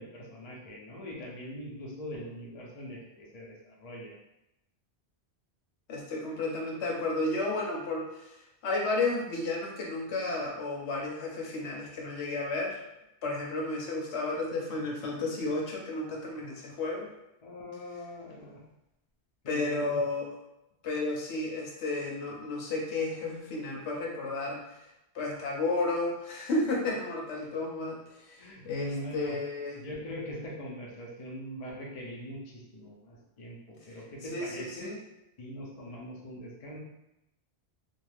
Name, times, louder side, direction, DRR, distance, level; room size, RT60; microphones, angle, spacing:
voice 1, 0.0-4.2 17.4-18.6 19.4-20.0 28.4-29.3 29.7-35.0 35.4-36.8, equal, 40° left, -3 dB, 0.6 m, -42 dB
voice 2, 5.9-8.4 8.6-12.8 13.2-17.1 19.5-20.4 20.8-24.6 25.1-28.0 28.3-29.8 34.3-35.0, left 2 dB, 90° left, -1 dB, 0.9 m, -32 dB
2.5 x 2.3 x 3.2 m, 0.89 s
omnidirectional pair, 1.1 m